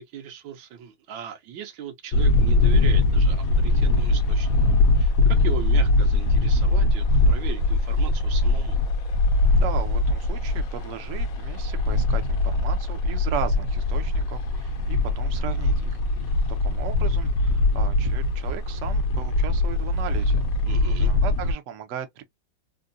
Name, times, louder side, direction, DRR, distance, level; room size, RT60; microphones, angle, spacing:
voice 1, 0.0-4.5 4.9-8.8 20.7-21.1, right 8 dB, 85° right, 1.6 m, -38 dB
sound 1, 2.1-21.5, left 2 dB, 60° left, 1.0 m, -22 dB
voice 2, 9.5-16.3 16.6-20.5 21.0-22.2, right 9 dB, 60° right, 0.8 m, -36 dB
3.7 x 2.2 x 2.5 m
omnidirectional pair, 2.0 m